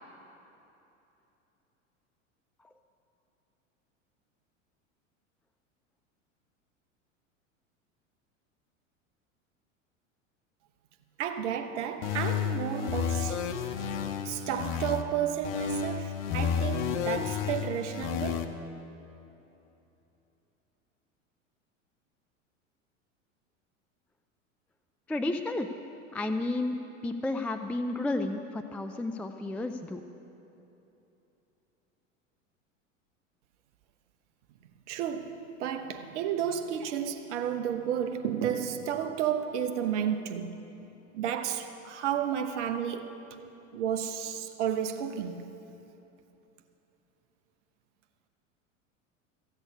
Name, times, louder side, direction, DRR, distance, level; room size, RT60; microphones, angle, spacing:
voice 1, 11.2-13.4 14.2-18.5 34.9-40.6 41.1-43.2 43.7-45.5, right 9 dB, 65° right, 1.2 m, -32 dB
sound 1, 12.0-15.0 15.4-18.4, left 7 dB, 60° left, 1.1 m, -31 dB
voice 2, 25.1-25.7 26.1-26.8 27.0-30.0, left 2 dB, 5° left, 0.4 m, -31 dB
15.0 x 8.1 x 8.6 m
hypercardioid pair, 85°, 39 cm